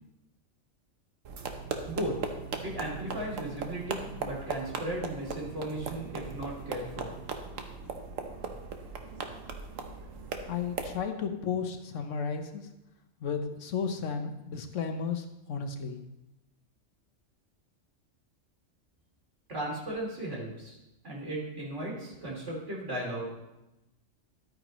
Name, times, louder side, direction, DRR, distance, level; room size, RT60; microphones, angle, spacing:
sound 1, 1.2-11.0, right 5 dB, 90° right, 1.3 m, -38 dB
voice 1, 1.9-2.2 2.6-7.2 19.5-20.8 21.0-23.3, right 1 dB, 65° right, -4 dB, 3.4 m, -36 dB
voice 2, 10.5-12.6 13.2-16.0, left 6 dB, 75° left, 6 dB, 1.2 m, -33 dB
12.5 x 9.0 x 3.0 m, 0.94 s
omnidirectional pair, 1.3 m